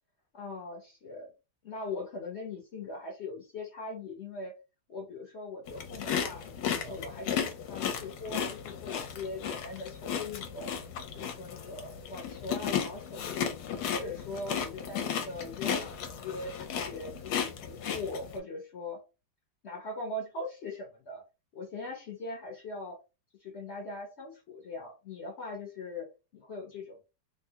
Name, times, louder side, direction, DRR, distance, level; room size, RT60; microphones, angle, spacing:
voice 1, 0.3-1.3 1.6-4.5 4.9-6.4 6.8-10.7 11.1-13.5 13.9-19.0 19.6-21.2 21.5-23.0 23.4-27.0, left 2 dB, 55° left, 0 dB, 0.8 m, -41 dB
sound 1, 5.7-18.4, left 8 dB, 70° left, 1.1 m, -35 dB
3.3 x 2.2 x 2.7 m, 0.29 s
omnidirectional pair, 1.8 m